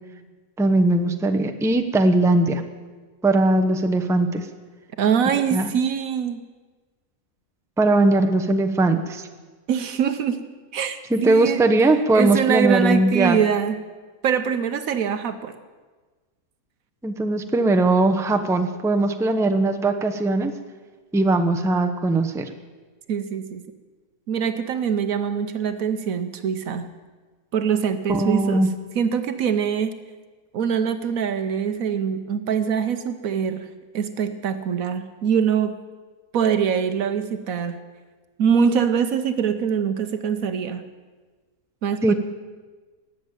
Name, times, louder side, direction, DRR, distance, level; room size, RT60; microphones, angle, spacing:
voice 1, 0.6-2.6 3.2-4.5 5.5-5.7 7.8-9.3 11.1-13.4 17.0-20.5 21.1-22.5 28.1-28.7 42.0-42.1, right 2 dB, 5° right, 5 dB, 0.6 m, -20 dB
voice 2, 5.0-6.4 9.7-10.4 10.7-13.8 14.2-15.5 23.1-23.6 24.3-26.9 27.5-30.0 30.5-33.7 33.9-35.7 36.3-37.8 38.4-40.9 41.8-42.1, right 7 dB, 70° right, 9 dB, 1.2 m, -23 dB
18.5 x 7.2 x 8.9 m, 1.4 s
omnidirectional pair, 1.6 m